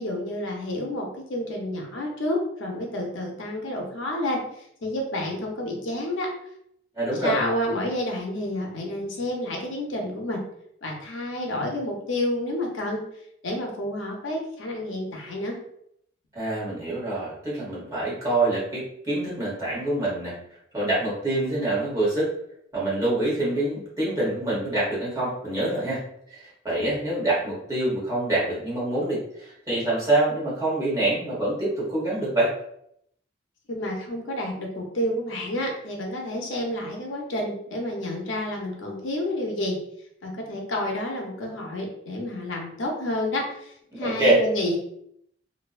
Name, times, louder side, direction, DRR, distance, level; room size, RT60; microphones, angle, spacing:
voice 1, 0.0-4.4 4.8-6.3 7.2-10.4 10.8-13.0 13.4-15.6 33.7-39.8 40.2-44.8, left 1 dB, 85° left, 0 dB, 0.6 m, -29 dB
voice 2, 6.9-7.4 16.3-20.4 20.7-22.3 22.7-26.0 26.3-32.5 43.9-44.4, right 2 dB, 20° right, -8 dB, 1.0 m, -25 dB
2.5 x 2.1 x 2.3 m, 0.71 s
head